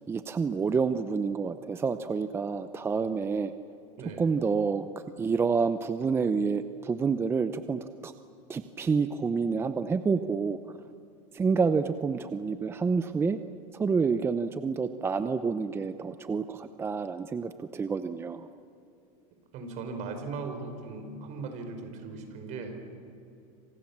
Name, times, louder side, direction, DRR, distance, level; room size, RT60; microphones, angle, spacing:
voice 1, 0.1-3.5 4.2-4.8 5.2-8.1 8.5-10.6 11.3-13.4 13.8-18.5, right 5 dB, 15° right, 11 dB, 0.7 m, -28 dB
voice 2, 4.0-4.3 19.5-22.8, right 4 dB, 45° right, 5 dB, 5.4 m, -38 dB
27.5 x 26.5 x 7.4 m, 2.6 s
supercardioid pair, 145°, 17 cm